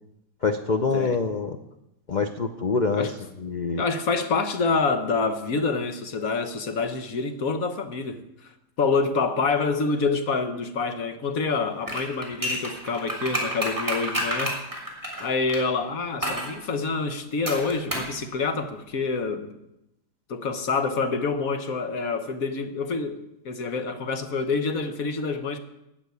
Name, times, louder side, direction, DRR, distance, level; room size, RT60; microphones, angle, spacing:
voice 1, 0.4-1.6 2.1-3.1 3.4-3.8, left 4 dB, 85° left, 7 dB, 0.4 m, -25 dB
voice 2, 3.8-8.5 8.8-14.6 15.2-19.6 20.3-25.6, left 4 dB, 55° left, 8 dB, 1.5 m, -27 dB
sound 1, 11.8-15.6 16.2-16.5 17.5-18.1 18.4-18.5, right 1 dB, 10° right, 3.4 m, -29 dB
15.0 x 6.0 x 9.5 m, 0.88 s
omnidirectional pair, 1.9 m